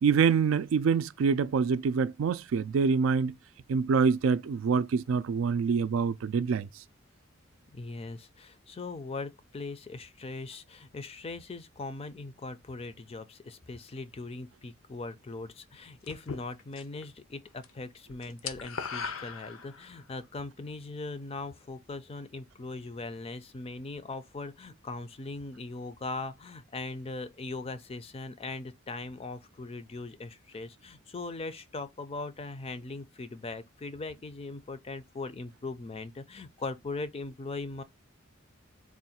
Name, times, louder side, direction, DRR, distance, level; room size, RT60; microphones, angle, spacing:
voice 1, 0.0-3.3 3.7-6.7, right 5 dB, 70° right, 0.3 m, -26 dB
voice 2, 7.7-37.8, left 3 dB, 30° left, 0.4 m, -40 dB
sound 1, 16.1-17.0 17.3-17.7 17.9-20.0, left 6 dB, 85° left, 0.6 m, -38 dB
3.6 x 2.3 x 4.2 m
head